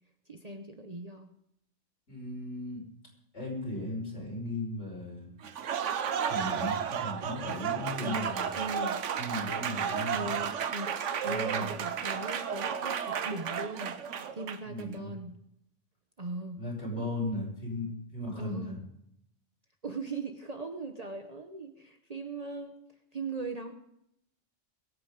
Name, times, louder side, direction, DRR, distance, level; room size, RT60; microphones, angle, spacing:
voice 1, 0.3-1.3 8.0-9.0 10.1-13.9 14.3-15.3 16.2-16.6 18.4-18.8 19.8-22.8 23.1-23.7, right 3 dB, 35° right, 5 dB, 0.9 m, -39 dB
voice 2, 2.1-2.8 3.3-5.3 6.2-8.5 9.2-10.3 11.2-11.8 14.6-15.1 16.6-18.8, left 1 dB, 65° left, -2 dB, 5.6 m, -36 dB
Applause, 5.4-14.8, right 8 dB, 75° right, 1.2 m, -33 dB
21.5 x 8.8 x 5.2 m, 0.78 s
omnidirectional pair, 1.3 m